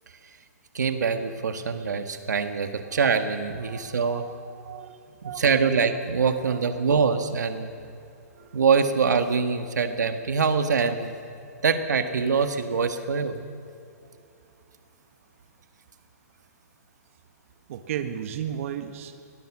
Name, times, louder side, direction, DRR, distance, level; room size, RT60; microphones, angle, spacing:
voice 1, 0.7-4.2 5.4-7.7 8.5-11.1 11.6-13.4, right 5 dB, 85° right, 7 dB, 1.7 m, -24 dB
voice 2, 3.6-5.8 6.4-6.9 7.6-8.6 14.2-14.3 17.7-19.1, right 9 dB, 50° right, 7 dB, 1.5 m, -37 dB
23.0 x 19.0 x 6.2 m, 2.5 s
hypercardioid pair, 150°, 9 cm